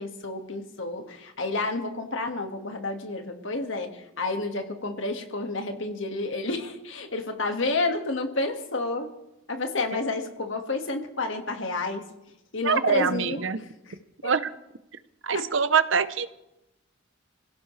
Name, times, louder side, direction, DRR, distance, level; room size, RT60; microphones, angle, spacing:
voice 1, 0.0-9.1 9.5-12.0 12.5-13.9 14.2-14.3 15.3-15.4, left 3 dB, 65° left, 4 dB, 2.0 m, -30 dB
voice 2, 12.6-13.6 14.2-14.5 15.2-16.3, right 6 dB, 65° right, 13 dB, 0.8 m, -24 dB
26.0 x 16.5 x 3.3 m, 0.91 s
head